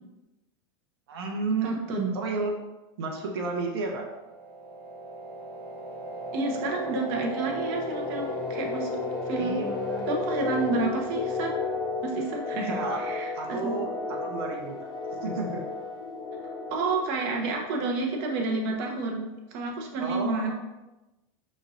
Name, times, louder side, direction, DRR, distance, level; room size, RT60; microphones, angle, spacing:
voice 1, 1.1-1.8 2.1-2.5 3.0-4.0 9.4-10.0 12.7-13.0 13.4-14.8 15.2-15.6 20.0-20.5, right 3 dB, 85° right, 1 dB, 0.7 m, -32 dB
voice 2, 1.6-2.1 6.3-8.9 9.3-9.7 10.1-11.6 12.0-13.7 16.7-20.5, right 3 dB, 50° right, 1 dB, 0.9 m, -30 dB
sound 1, 3.9-18.4, left 3 dB, 35° left, 1.2 m, -34 dB
5.1 x 3.1 x 2.6 m, 1.0 s
supercardioid pair, 135°, 13 cm